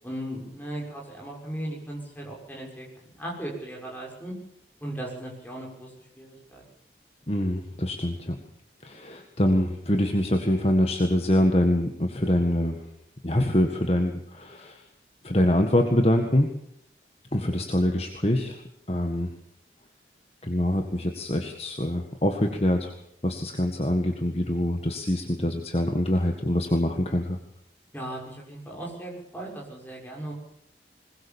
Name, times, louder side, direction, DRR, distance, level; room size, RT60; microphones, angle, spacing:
voice 1, 0.0-4.3 4.8-5.9 6.2-6.6 27.9-30.3, right 1 dB, 10° left, -2 dB, 6.6 m, -37 dB
voice 2, 7.3-8.4 8.8-12.9 13.2-14.8 15.2-16.5 17.3-19.3 20.4-22.9 23.2-27.4, left 1 dB, 35° left, 4 dB, 1.8 m, -24 dB
21.0 x 20.5 x 7.2 m, 0.76 s
head